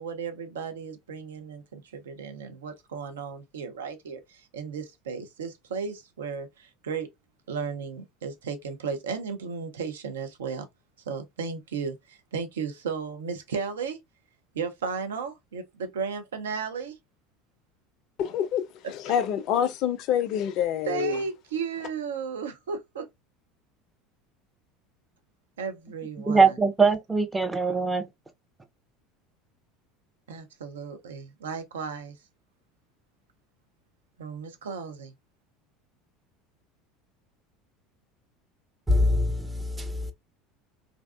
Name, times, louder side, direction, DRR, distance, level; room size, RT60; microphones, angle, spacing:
voice 1, 0.0-7.1 7.5-10.7 11.1-14.0 14.5-16.9 20.9-23.1 25.6-26.6 30.3-32.2 34.2-35.1, right 5 dB, 70° right, 0.5 m, -34 dB
voice 2, 18.2-21.2, left 9 dB, 50° left, 0.4 m, -27 dB
voice 3, 26.3-28.1 38.9-40.1, right 2 dB, 15° right, 0.5 m, -23 dB
2.5 x 2.2 x 2.3 m
figure-of-eight pair, 70°, 0 cm